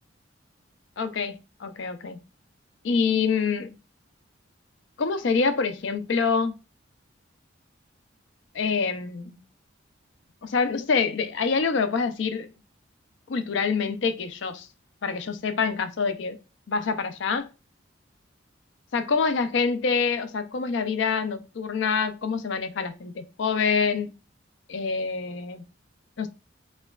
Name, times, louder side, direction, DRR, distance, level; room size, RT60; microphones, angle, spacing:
voice 1, 1.0-1.3 1.6-2.2 2.8-3.7 5.0-6.5 8.5-9.4 10.4-12.5 13.3-14.7 15.0-16.4 16.7-17.5 18.9-24.1 24.7-25.6 26.2-26.3, left 5 dB, 65° left, 0.4 m, -26 dB
4.3 x 2.3 x 2.3 m
head